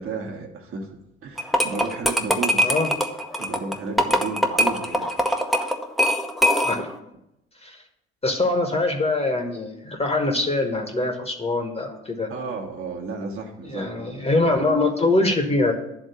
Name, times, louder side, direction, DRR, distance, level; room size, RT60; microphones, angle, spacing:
voice 1, 0.0-2.9 3.4-5.1 12.3-14.5, right 4 dB, 45° right, 1 dB, 1.3 m, -33 dB
sound 1, 1.4-7.0, equal, ahead, 0.8 m, -22 dB
voice 2, 8.2-12.3 13.6-15.7, left 2 dB, 20° left, 4 dB, 1.2 m, -23 dB
9.9 x 3.6 x 6.8 m, 0.86 s
hypercardioid pair, 55°, 32 cm